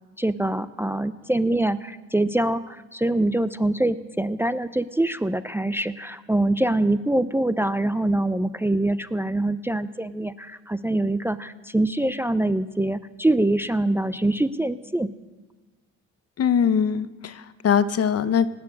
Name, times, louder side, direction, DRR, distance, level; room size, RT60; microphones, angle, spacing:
voice 1, 0.2-15.1, right 1 dB, 10° right, 12 dB, 0.5 m, -24 dB
voice 2, 16.4-18.5, left 7 dB, 55° left, 13 dB, 0.9 m, -22 dB
18.5 x 7.6 x 8.4 m, 1.3 s
cardioid pair, 90°, 30 cm